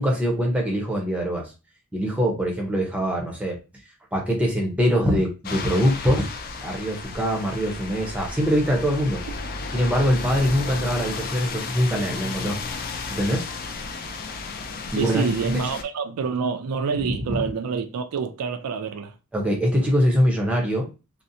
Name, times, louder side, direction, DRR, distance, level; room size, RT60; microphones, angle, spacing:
voice 1, 0.0-1.5 1.9-3.6 4.1-6.3 6.6-9.2 9.7-12.6 13.1-13.5 14.9-15.3 17.3-17.4 19.3-20.9, equal, 5° right, 0.6 m, -23 dB
sound 1, 5.4-15.8, left 4 dB, 40° left, 0.3 m, -33 dB
voice 2, 15.0-19.2, right 5 dB, 80° right, 0.4 m, -27 dB
2.6 x 2.1 x 2.6 m
head